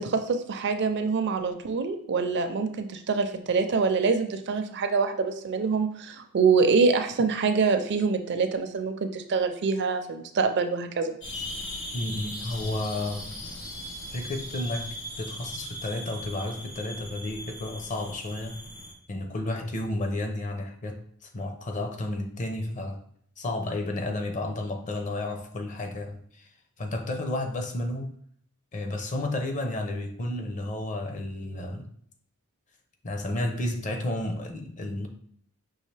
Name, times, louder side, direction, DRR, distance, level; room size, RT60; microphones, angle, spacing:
voice 1, 0.0-11.2, right 4 dB, 50° right, 7 dB, 0.4 m, -25 dB
sound 1, 11.2-18.9, equal, 55° left, 1.4 m, -39 dB
voice 2, 11.9-13.3 14.1-18.6 19.1-21.0 21.3-23.0 23.4-26.5 26.8-28.1 28.7-31.9 33.0-35.1, left 1 dB, 35° left, 4 dB, 0.6 m, -32 dB
5.4 x 2.8 x 3.3 m, 0.63 s
head